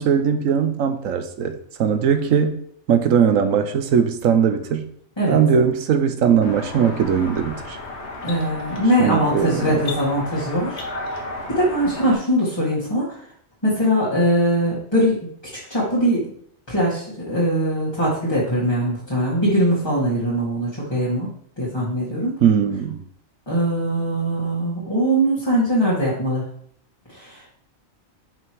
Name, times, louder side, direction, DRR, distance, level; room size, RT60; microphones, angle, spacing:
voice 1, 0.0-2.6 2.9-4.9 5.3-7.8 9.0-9.8 22.4-23.0, right 7 dB, 80° right, 9 dB, 1.2 m, -19 dB
sound 1, 6.4-12.1, left 2 dB, 55° left, 1.6 m, -33 dB
voice 2, 8.2-10.8 11.5-13.2 13.6-15.2 15.7-16.3 16.7-21.3 21.6-22.4 23.5-26.5 27.1-27.4, equal, 20° left, -8 dB, 2.0 m, -21 dB
5.8 x 5.3 x 4.7 m, 0.64 s
omnidirectional pair, 1.4 m